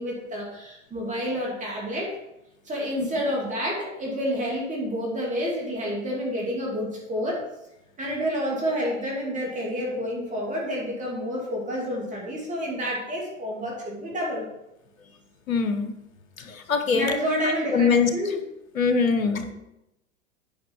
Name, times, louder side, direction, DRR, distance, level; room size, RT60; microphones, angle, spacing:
voice 1, 0.0-2.1 2.7-7.4 8.0-14.5 16.9-18.4, equal, 20° right, -3 dB, 2.6 m, -29 dB
voice 2, 15.5-15.9 16.4-17.1 17.4-18.1 18.7-19.5, left 5 dB, 85° left, 8 dB, 1.1 m, -23 dB
9.4 x 5.4 x 4.5 m, 0.86 s
hypercardioid pair, 100°, 40 cm